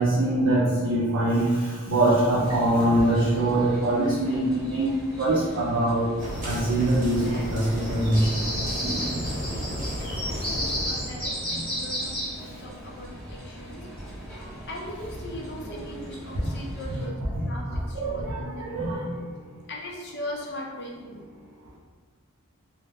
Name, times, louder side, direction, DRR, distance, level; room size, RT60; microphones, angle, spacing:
voice 1, 0.0-4.9 5.2-6.0 6.4-8.4 15.7-15.8 16.4-16.5 17.3-17.4 17.9-19.0, right 1 dB, 60° right, -8 dB, 0.5 m, -23 dB
sound 1, 2.4-17.1, equal, 5° left, 0.7 m, -36 dB
sound 2, 6.2-11.2, equal, 35° right, 0.8 m, -32 dB
voice 2, 9.4-13.8 14.6-17.2 17.4-19.1 19.7-21.2, left 1 dB, 50° left, -1 dB, 0.5 m, -39 dB
2.1 x 2.1 x 3.4 m, 1.5 s
head